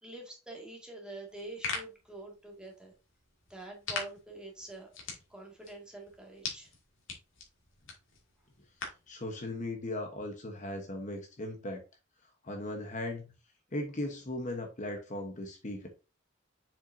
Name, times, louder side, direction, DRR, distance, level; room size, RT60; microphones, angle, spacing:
voice 1, 0.0-2.9 3.5-4.9 5.3-6.7, right 2 dB, 5° right, 2.0 m, -46 dB
sound 1, 1.3-9.1, left 4 dB, 75° left, 2.5 m, -43 dB
voice 2, 9.1-11.8 12.4-13.3 13.7-15.9, left 1 dB, 40° left, 1.1 m, -38 dB
7.0 x 5.6 x 2.7 m
head